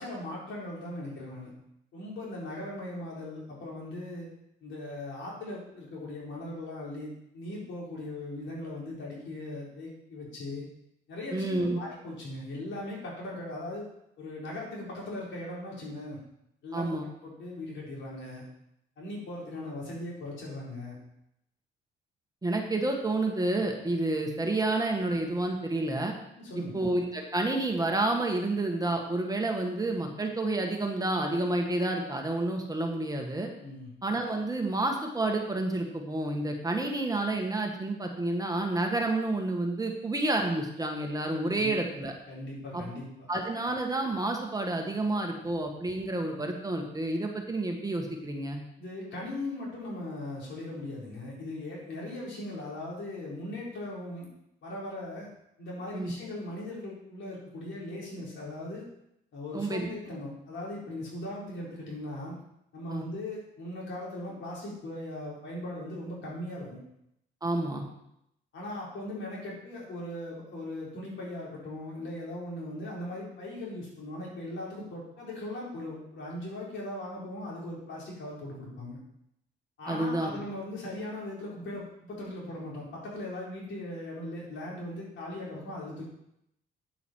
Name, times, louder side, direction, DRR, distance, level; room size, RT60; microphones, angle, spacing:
voice 1, 0.0-1.5 1.9-4.3 4.6-10.7 11.1-13.9 14.2-16.2 16.6-16.9 17.2-18.4 19.0-21.0 26.4-26.7 33.6-33.9 41.6-41.7 42.3-43.1 48.8-54.3 54.6-55.3 55.6-58.8 59.3-62.4 62.7-66.8 68.5-79.0 79.8-86.0, left 1 dB, 70° left, -4 dB, 4.5 m, -39 dB
voice 2, 11.3-11.8 16.7-17.1 22.4-26.1 26.5-33.5 34.0-42.1 42.7-42.8 43.3-48.6 55.9-56.1 59.5-59.9 62.9-63.0 67.4-67.9 79.9-80.4, right 2 dB, 20° right, 2 dB, 1.5 m, -29 dB
9.0 x 7.9 x 4.6 m, 0.78 s
cardioid pair, 90°, 20 cm